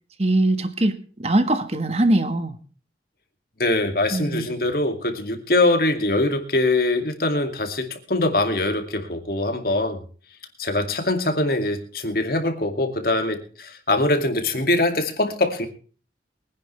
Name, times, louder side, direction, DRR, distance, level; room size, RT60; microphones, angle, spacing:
voice 1, 0.2-2.6 4.1-4.5, right 1 dB, 35° right, 1.5 m, -22 dB
voice 2, 3.6-10.0 10.6-15.7, left 2 dB, 55° left, 2.4 m, -23 dB
23.0 x 10.5 x 3.4 m
head